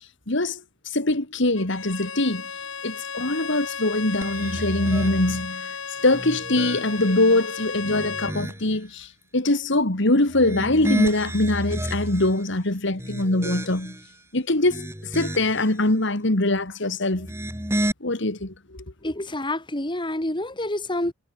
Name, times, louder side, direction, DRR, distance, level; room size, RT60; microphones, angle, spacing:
voice 1, 0.3-2.4 2.8-5.8 6.0-14.0 14.3-17.3 18.0-18.8, left 2 dB, 65° left, 2.6 m, -23 dB
Bowed string instrument, 1.6-8.4, left 6 dB, 80° left, 3.7 m, -34 dB
sound 1, 4.2-5.5 6.0-7.2 7.7-8.8 10.3-12.4 12.9-14.1 14.5-15.7 17.1-17.9, equal, 15° right, 5.4 m, -31 dB
voice 2, 19.0-21.1, left 1 dB, 25° left, 3.4 m, -28 dB
head